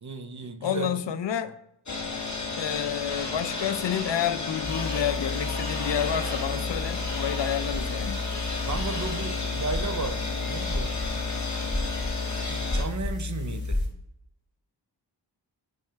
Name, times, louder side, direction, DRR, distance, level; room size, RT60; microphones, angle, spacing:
voice 1, 0.0-0.9 8.7-10.9 12.5-13.8, right 4 dB, 40° right, 9 dB, 0.7 m, -34 dB
voice 2, 0.6-1.5 2.6-8.2, left 9 dB, 75° left, 12 dB, 0.6 m, -29 dB
sound 1, 1.9-12.8, left 3 dB, 40° left, 1.3 m, -33 dB
sound 2, 4.6-13.9, left 2 dB, 25° left, 2.1 m, -32 dB
9.2 x 3.2 x 4.5 m, 0.80 s
wide cardioid pair, 110°, 43 cm